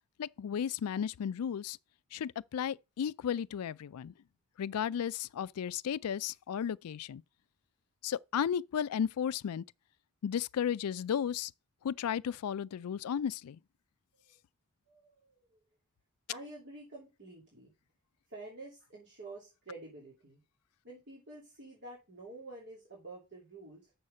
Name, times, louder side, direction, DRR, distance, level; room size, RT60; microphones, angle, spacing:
voice 1, 0.2-1.8 2.1-4.1 4.6-7.2 8.0-9.6 10.2-11.5 11.8-13.6, left 8 dB, 85° left, 0.4 m, -34 dB
voice 2, 14.9-15.6 16.3-17.7 18.3-20.4 20.8-23.9, right 2 dB, 50° right, 2.9 m, -49 dB
7.6 x 6.4 x 5.4 m
head